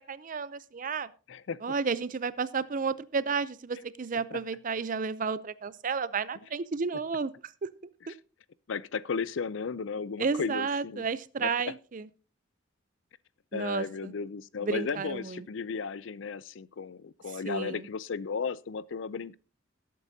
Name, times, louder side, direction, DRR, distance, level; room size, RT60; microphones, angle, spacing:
voice 1, 0.1-1.1 1.6-7.7 8.1-8.2 10.2-12.1 13.5-14.1 14.6-15.5 17.4-17.9, right 5 dB, 40° right, 0.5 m, -32 dB
voice 2, 1.3-1.6 8.7-11.0 11.4-11.5 13.5-19.4, left 5 dB, 65° left, 0.5 m, -35 dB
18.0 x 8.5 x 2.7 m
head